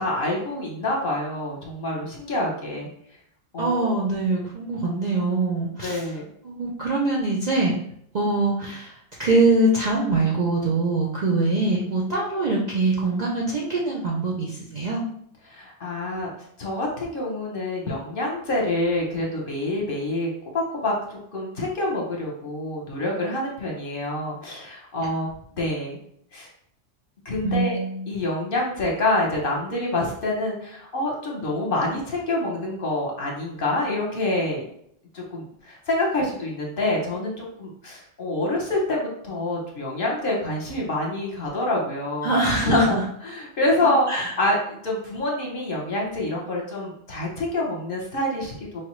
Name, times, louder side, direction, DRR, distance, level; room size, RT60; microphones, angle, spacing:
voice 1, 0.0-2.9 3.5-3.9 5.8-6.3 15.5-16.3 16.6-25.3 25.6-26.0 26.3-26.5 27.2-27.8 28.1-34.6 35.1-42.3 42.6-43.0 43.2-44.1 44.4-48.8, left 1 dB, 50° left, -2 dB, 0.9 m, -26 dB
voice 2, 3.6-6.1 6.4-7.7 8.1-15.0 27.4-28.0 42.2-42.9 44.1-44.3, right 2 dB, 50° right, -3 dB, 0.5 m, -23 dB
4.6 x 2.1 x 3.0 m, 0.70 s
omnidirectional pair, 1.3 m